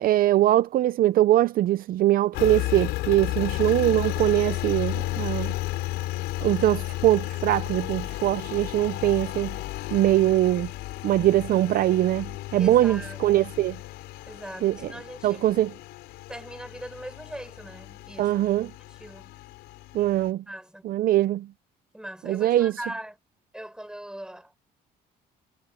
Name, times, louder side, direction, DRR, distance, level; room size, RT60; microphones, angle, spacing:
voice 1, 0.0-5.5 6.4-9.6 9.9-10.7 11.0-13.8 14.6-14.8 15.2-15.7 18.2-18.7 19.9-20.4 20.8-21.5 22.2-22.7, right 14 dB, 60° right, 0.6 m, -22 dB
Engine, 2.3-20.3, left 17 dB, 90° left, 5.2 m, -33 dB
voice 2, 12.6-13.5 14.3-15.4 16.3-18.4 18.9-19.4 20.5-20.9 21.9-23.2 23.5-24.6, right 1 dB, 5° right, 6.0 m, -40 dB
cardioid pair, 110°, 17 cm